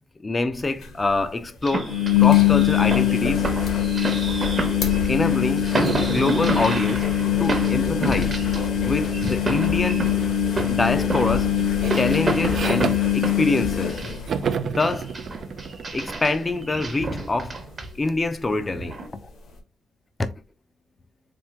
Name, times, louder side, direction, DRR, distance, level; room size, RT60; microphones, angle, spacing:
voice 1, 0.2-3.5 5.1-5.7 6.0-7.1 7.4-8.5 8.8-10.2 10.7-11.6 11.9-14.0 14.6-15.2 15.9-17.6 18.0-19.3 20.2-20.3, left 2 dB, 25° left, 0.5 m, -25 dB
sound 1, 0.6-0.7 0.8-0.9 1.8-14.9 15.3-15.7 16.0-16.1 17.9-18.0, left 10 dB, 70° left, 1.2 m, -22 dB
sound 2, 1.6-8.8 9.0-14.5 14.8-18.2 18.7-19.1, right 2 dB, 35° right, 1.0 m, -30 dB
sound 3, 5.8-9.1 10.0-10.4 10.7-13.9 14.3-17.8, right 6 dB, 55° right, 0.4 m, -33 dB
3.5 x 3.5 x 3.0 m
cardioid pair, 90°, 0 cm